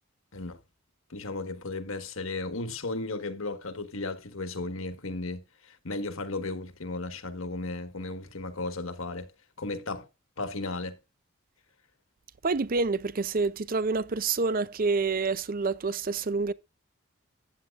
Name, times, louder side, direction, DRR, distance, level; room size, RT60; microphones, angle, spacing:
voice 1, 1.1-9.3 9.6-10.1 10.4-11.0, left 2 dB, 75° left, 1.5 m, -35 dB
voice 2, 12.4-16.5, right 4 dB, 40° right, 0.5 m, -27 dB
14.5 x 9.5 x 2.5 m
head